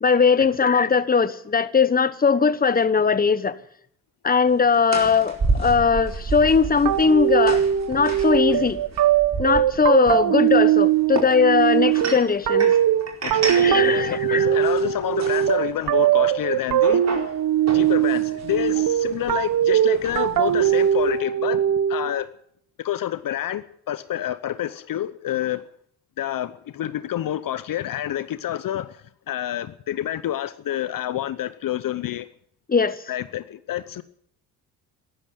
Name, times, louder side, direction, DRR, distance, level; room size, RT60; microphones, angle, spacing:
voice 1, 0.0-3.6 4.2-7.6 7.9-8.8 9.4-12.7 13.5-14.6 32.7-33.0, left 5 dB, 20° left, 1.1 m, -20 dB
sound 1, 4.5-21.2, right 3 dB, 40° right, 4.5 m, -33 dB
sound 2, 6.8-22.2, right 11 dB, 55° right, 1.1 m, -20 dB
voice 2, 13.2-17.4 17.7-21.6 21.9-22.3 22.8-25.7 26.2-32.3 33.1-34.0, left 12 dB, 55° left, 0.9 m, -28 dB
13.0 x 12.0 x 9.2 m
supercardioid pair, 60°, 40 cm